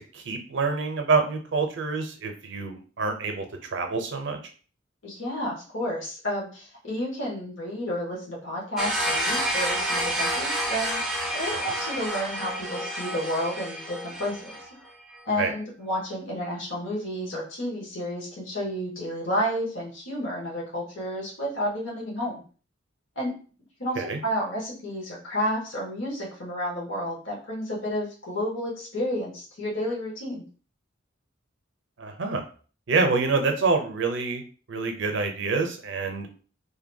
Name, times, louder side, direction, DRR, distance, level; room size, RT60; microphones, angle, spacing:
voice 1, 0.1-3.4 3.7-4.4 11.4-11.7 15.4-15.5 24.0-24.2 32.0-32.4 32.9-34.4 34.7-36.3, right 4 dB, 60° right, 5 dB, 0.5 m, -26 dB
voice 2, 5.0-11.0 11.3-14.4 15.2-22.4 23.1-23.3 23.8-30.4, equal, 75° left, -4 dB, 1.2 m, -31 dB
sound 1, 8.8-14.7, equal, ahead, 0.4 m, -29 dB
2.7 x 2.2 x 2.6 m, 0.39 s
head